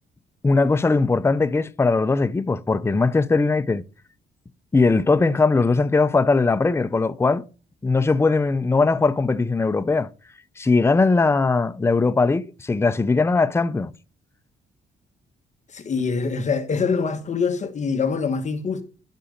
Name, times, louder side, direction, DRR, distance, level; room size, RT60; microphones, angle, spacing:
voice 1, 0.4-3.8 4.7-7.4 7.8-10.1 10.6-13.9, left 3 dB, 15° left, 0.6 m, -20 dB
voice 2, 15.7-18.8, left 5 dB, 40° left, 1.4 m, -24 dB
11.5 x 6.2 x 5.2 m
cardioid pair, 120°, 18 cm